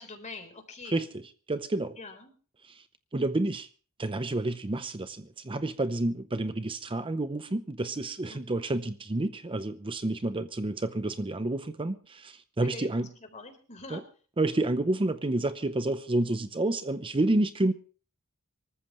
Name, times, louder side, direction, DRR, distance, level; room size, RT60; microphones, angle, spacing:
voice 1, 0.0-1.0 2.0-2.3 8.3-8.5 12.6-12.9 13.3-14.0, left 3 dB, 35° left, 3.9 m, -44 dB
voice 2, 0.8-2.0 2.6-2.8 3.1-3.7 4.0-13.1 13.9-14.0 14.4-17.7, right 2 dB, 25° right, 0.6 m, -29 dB
25.0 x 14.0 x 3.1 m
head